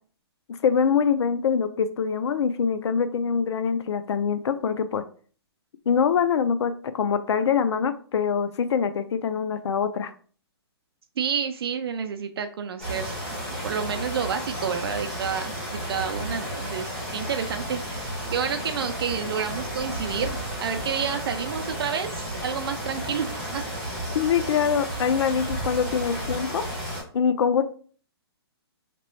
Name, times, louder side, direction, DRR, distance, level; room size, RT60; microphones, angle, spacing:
voice 1, 0.6-5.0 5.9-10.1 24.1-26.6 27.1-27.6, left 6 dB, 85° left, 10 dB, 0.4 m, -24 dB
voice 2, 11.2-13.2 13.6-23.6 24.0-24.1, right 7 dB, 65° right, 8 dB, 0.4 m, -30 dB
sound 1, 12.8-27.0, equal, ahead, 1.5 m, -33 dB
3.0 x 2.9 x 3.1 m, 0.43 s
hypercardioid pair, 165°, 14 cm